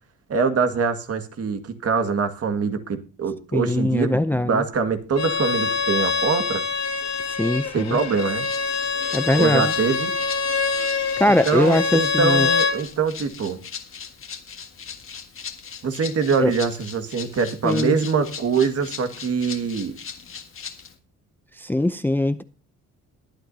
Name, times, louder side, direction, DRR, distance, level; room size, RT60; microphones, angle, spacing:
voice 1, 0.3-6.6 7.7-8.5 9.4-10.1 11.4-13.6 15.8-20.0, right 5 dB, 55° right, 1.9 m, -24 dB
voice 2, 3.5-4.6 7.2-8.0 9.1-9.7 11.2-12.5 16.4-16.5 17.6-18.0 21.6-22.4, left 1 dB, 5° left, 0.5 m, -21 dB
Bowed string instrument, 5.2-12.8, left 5 dB, 65° left, 2.4 m, -25 dB
Rattle (instrument), 8.4-20.9, left 6 dB, 45° left, 1.8 m, -39 dB
22.0 x 9.0 x 2.8 m
cardioid pair, 90°, 30 cm